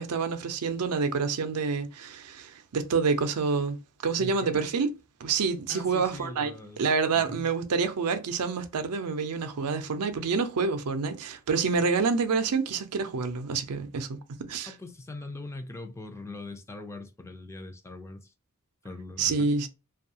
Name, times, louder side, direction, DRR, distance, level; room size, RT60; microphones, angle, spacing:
voice 1, 0.0-4.9 5.2-14.7 19.2-19.7, right 5 dB, 90° right, 0.5 m, -28 dB
voice 2, 4.2-4.7 5.7-6.8 7.1-7.5 14.7-18.3 18.8-19.5, left 2 dB, 10° left, 0.3 m, -41 dB
2.6 x 2.3 x 2.7 m
head